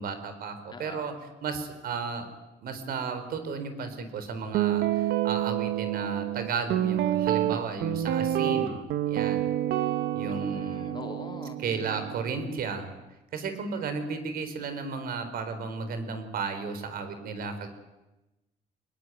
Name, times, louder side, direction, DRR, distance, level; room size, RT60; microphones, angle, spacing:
voice 1, 0.0-2.3 2.6-9.5 10.1-10.9 11.6-12.9 13.3-17.7, right 5 dB, 60° right, 9 dB, 4.3 m, -34 dB
voice 2, 0.7-1.0 10.3-11.6, left 4 dB, 25° left, 5 dB, 3.3 m, -41 dB
Guitar, 4.5-12.7, right 12 dB, 80° right, 1.4 m, -28 dB
23.5 x 19.5 x 9.3 m, 1.0 s
cardioid pair, 110°, 17 cm